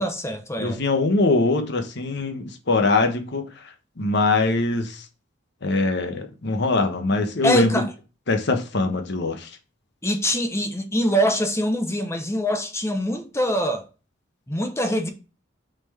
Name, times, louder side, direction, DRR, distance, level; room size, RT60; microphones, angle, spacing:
voice 1, 0.0-0.8 7.4-7.9 10.0-13.9 14.5-15.1, equal, 15° left, 0.9 m, -24 dB
voice 2, 0.6-3.4 4.0-5.0 5.6-7.7 8.3-9.5, left 3 dB, 65° left, 1.2 m, -22 dB
6.3 x 4.5 x 4.3 m
head